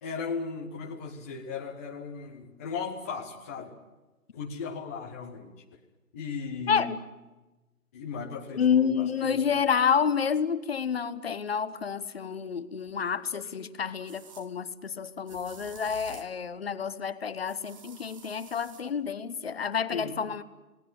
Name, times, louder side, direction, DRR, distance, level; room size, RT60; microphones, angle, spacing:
voice 1, 0.0-3.7 4.3-5.6 6.1-6.9 7.9-9.4 19.9-20.2, left 5 dB, 10° left, 0.8 m, -37 dB
voice 2, 6.7-7.0 8.5-20.4, left 7 dB, 40° left, 1.2 m, -29 dB
sound 1, 12.9-13.0 14.0-14.5 15.3-16.4 17.5-18.9, right 5 dB, 20° right, 1.5 m, -49 dB
30.0 x 18.5 x 9.5 m
figure-of-eight pair, 150°, 45 cm